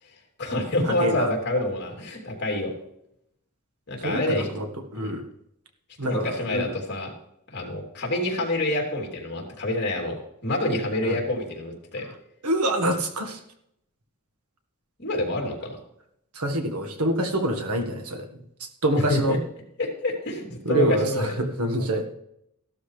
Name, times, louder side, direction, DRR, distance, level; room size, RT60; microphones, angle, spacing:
voice 1, 0.4-2.7 3.9-4.5 4.9-5.1 6.0-7.1 7.5-12.1 15.0-15.8 19.0-19.4 19.8-21.4, left 1 dB, 50° left, 0 dB, 3.2 m, -27 dB
voice 2, 4.0-4.7 4.9-5.2 6.0-6.7 11.0-11.2 12.4-13.4 16.3-18.2 18.6-19.4 20.6-22.0, right 1 dB, 85° right, 5 dB, 1.7 m, -26 dB
15.0 x 12.5 x 3.3 m, 0.77 s
head